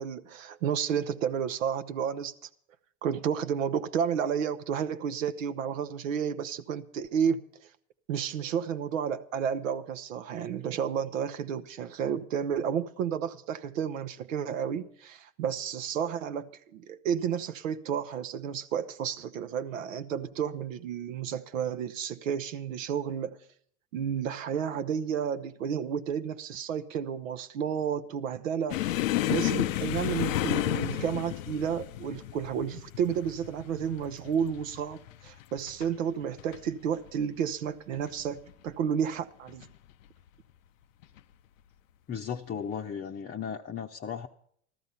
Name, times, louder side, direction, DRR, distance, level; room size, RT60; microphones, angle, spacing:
voice 1, 0.0-2.3 3.0-7.4 8.1-23.4 23.9-28.8 29.3-39.7, right 8 dB, 80° right, 0.7 m, -31 dB
sound 1, 28.7-35.9 36.2-36.6 36.9-37.1 37.9-38.5 39.5-39.7 41.0-41.2, left 14 dB, 85° left, 0.5 m, -32 dB
voice 2, 42.1-44.3, left 7 dB, 25° left, 0.7 m, -36 dB
14.0 x 13.0 x 5.6 m
hypercardioid pair, 90°, 38 cm